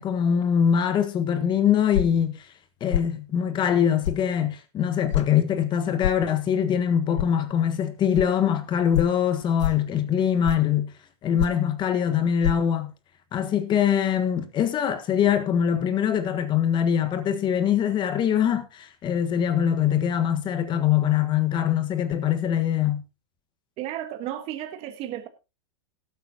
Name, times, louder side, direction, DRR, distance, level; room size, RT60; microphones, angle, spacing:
voice 1, 0.0-2.5 2.8-10.9 11.2-12.9 13.3-23.0, left 9 dB, 30° left, 1.4 m, -23 dB
sound 1, 1.9-2.2 2.9-3.1 4.0-4.2 5.1-5.3 6.0-6.2 7.2-7.3 8.1-8.3 8.9-9.1 9.6-9.9 10.4-10.7 11.4-11.7 12.4-12.5, left 11 dB, 80° left, 0.5 m, -26 dB
voice 2, 23.8-25.3, right 12 dB, 40° right, 1.4 m, -33 dB
18.0 x 8.3 x 2.8 m
hypercardioid pair, 115°, 15 cm